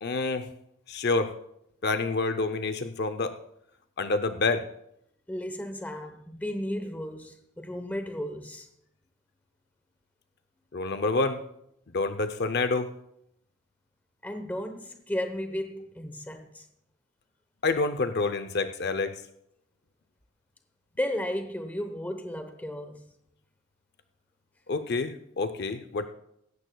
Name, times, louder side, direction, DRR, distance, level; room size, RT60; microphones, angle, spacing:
voice 1, 0.0-0.4 0.9-1.3 1.8-3.3 4.0-4.7 10.7-11.4 11.9-12.9 17.6-19.2 24.7-26.1, left 3 dB, 50° left, 0.6 m, -27 dB
voice 2, 5.3-8.7 14.2-16.6 21.0-23.0, left 1 dB, 10° left, 0.9 m, -34 dB
17.0 x 15.0 x 2.3 m
head